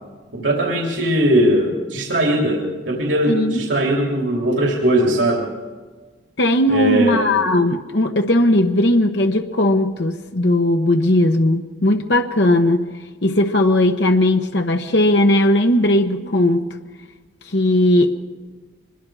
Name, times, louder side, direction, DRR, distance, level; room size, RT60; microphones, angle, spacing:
voice 1, 0.3-5.5 6.7-7.2, right 1 dB, 90° right, -1 dB, 3.2 m, -19 dB
voice 2, 3.3-3.6 6.4-12.9 13.2-16.7 17.5-18.1, left 1 dB, 70° left, 5 dB, 1.2 m, -17 dB
24.5 x 22.0 x 4.9 m, 1.4 s
head